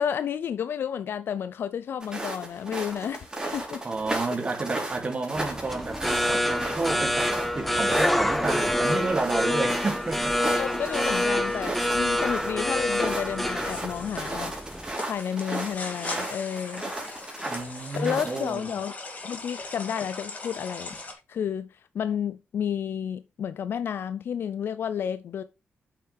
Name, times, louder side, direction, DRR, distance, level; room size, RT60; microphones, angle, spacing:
voice 1, 0.0-3.3 3.5-3.8 9.5-9.7 10.6-14.5 15.0-16.9 17.9-19.0 19.2-25.4, left 8 dB, 70° left, 0.4 m, -31 dB
sound 1, 2.0-18.5, right 2 dB, 20° right, 3.4 m, -35 dB
voice 2, 3.8-10.4 17.4-18.7, right 3 dB, 35° right, 2.4 m, -31 dB
sound 2, 5.3-14.9, left 1 dB, 5° left, 0.9 m, -27 dB
sound 3, 9.1-21.1, left 3 dB, 40° left, 2.4 m, -42 dB
7.8 x 6.7 x 3.4 m
cardioid pair, 75°, 4 cm